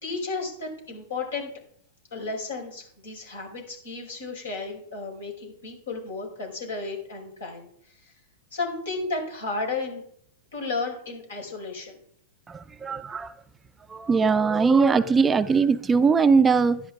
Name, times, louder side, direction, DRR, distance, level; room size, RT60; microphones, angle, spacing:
voice 1, 0.0-1.5 2.1-7.7 8.0-8.1 8.5-10.0 10.5-12.0, left 3 dB, 75° left, 5.0 m, -33 dB
voice 2, 12.5-13.3 13.9-16.8, right 5 dB, 15° right, 0.5 m, -20 dB
12.0 x 10.5 x 3.6 m
hypercardioid pair, 105°, 0 cm